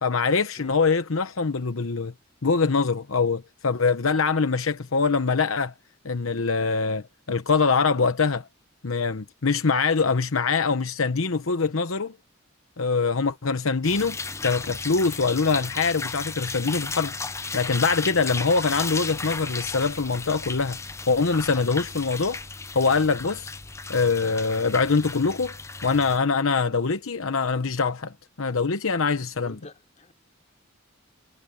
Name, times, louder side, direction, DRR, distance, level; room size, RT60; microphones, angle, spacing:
voice 1, 0.0-2.1 2.4-5.7 6.0-8.5 8.8-12.1 12.8-17.1 17.5-20.8 21.1-22.4 22.7-23.5 23.9-25.5 25.8-29.6, left 4 dB, 80° left, 0.9 m, -24 dB
sound 1, 13.8-26.2, left 4 dB, 15° left, 0.5 m, -35 dB
voice 2, 29.4-30.1, left 1 dB, 35° left, 5.5 m, -46 dB
head